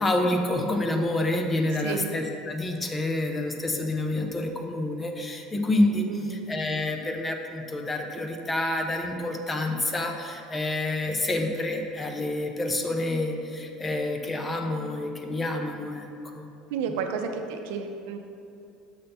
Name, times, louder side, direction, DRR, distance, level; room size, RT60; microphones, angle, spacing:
voice 1, 0.0-16.5, left 2 dB, 15° left, 4 dB, 0.5 m, -28 dB
voice 2, 6.1-6.5 16.7-18.2, right 6 dB, 85° right, 6 dB, 0.6 m, -31 dB
6.7 x 5.6 x 3.5 m, 2.5 s
cardioid pair, 165°, 0 cm